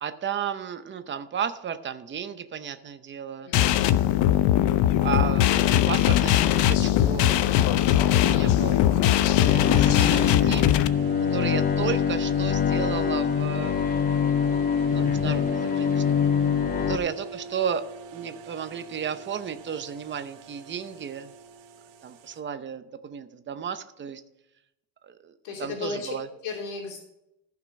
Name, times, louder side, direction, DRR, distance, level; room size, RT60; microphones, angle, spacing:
voice 1, 0.0-3.5 5.0-7.8 8.2-8.8 9.2-10.7 11.3-13.7 14.9-16.0 16.9-17.8 18.1-21.3 22.0-24.2 25.0-25.3 25.6-26.3, right 8 dB, 25° right, 9 dB, 0.7 m, -33 dB
voice 2, 3.4-3.8 16.8-17.0 25.4-26.1 26.4-27.0, left 4 dB, 75° left, -1 dB, 3.1 m, -35 dB
sound 1, 3.5-10.9, left 12 dB, 55° left, 0.7 m, -20 dB
sound 2, 4.5-22.4, right 4 dB, 70° right, 2.0 m, -44 dB
Bowed string instrument, 9.5-17.0, left 7 dB, 20° left, 0.4 m, -24 dB
15.0 x 6.0 x 5.3 m, 0.84 s
cardioid pair, 165°, 48 cm